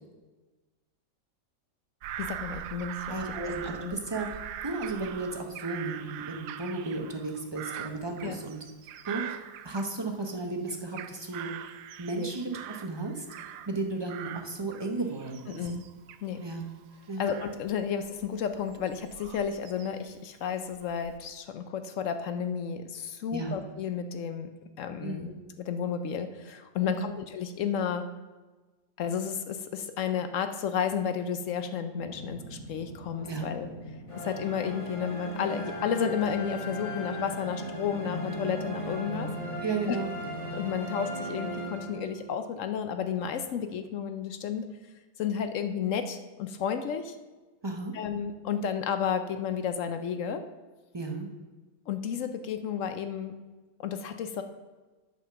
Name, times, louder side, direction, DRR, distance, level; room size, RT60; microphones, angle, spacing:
Bird vocalization bird call bird song / Crow, 2.0-10.3 10.7-13.8 14.1-20.1 20.6-21.2, right 10 dB, 75° right, 1.1 m, -42 dB
voice 1, 2.2-3.2 3.5-3.6 3.8-4.0 8.2-8.4 12.2-12.3 15.5-15.8 16.2-16.4 17.2-24.5 24.8-25.3 25.6-28.1 29.0-33.7 34.2-39.3 39.9-40.0 40.5-44.7 45.2-47.1 47.9-50.4 51.9-53.3 53.8-54.4, left 7 dB, 65° left, 9 dB, 0.8 m, -32 dB
voice 2, 3.1-4.3 4.6-8.6 9.1-11.5 12.0-13.2 13.7-15.6 16.4-16.6 17.1-17.3 23.3-23.6 25.0-25.4 26.8-27.1 33.2-33.5 39.6-40.1 47.6-47.9 50.9-51.3, right 3 dB, 40° right, 3 dB, 0.3 m, -34 dB
sound 1, 32.0-40.7, equal, 20° right, 1.1 m, -43 dB
sound 2, 34.1-42.4, equal, 20° left, 1.1 m, -38 dB
8.9 x 5.4 x 6.8 m, 1.2 s
omnidirectional pair, 1.9 m